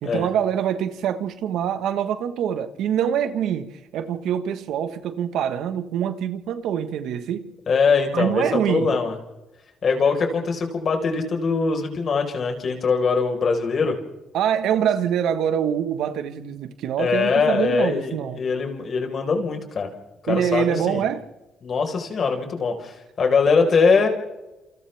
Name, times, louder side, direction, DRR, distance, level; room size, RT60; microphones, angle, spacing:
voice 1, 0.0-7.5 8.1-9.0 14.3-18.4 20.3-21.2, right 9 dB, 85° right, 1.5 m, -25 dB
voice 2, 7.7-9.1 9.8-14.0 17.0-19.9 20.2-21.0 21.6-24.1, left 5 dB, 50° left, 4.7 m, -22 dB
29.0 x 28.0 x 3.6 m
cardioid pair, 90°, 0 cm